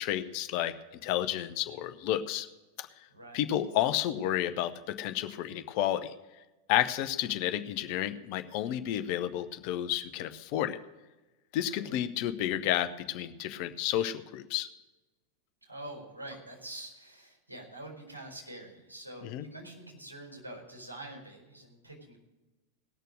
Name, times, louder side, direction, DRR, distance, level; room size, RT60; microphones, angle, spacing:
voice 1, 0.0-2.5 2.8-2.9 3.3-6.1 6.7-10.8 11.5-14.7 19.2-19.4, left 12 dB, 45° left, 11 dB, 0.7 m, -31 dB
voice 2, 3.1-3.4 11.7-12.0 15.6-22.2, right 1 dB, 80° right, -1 dB, 4.7 m, -46 dB
18.5 x 6.7 x 6.3 m, 1.1 s
figure-of-eight pair, 90°, 0 cm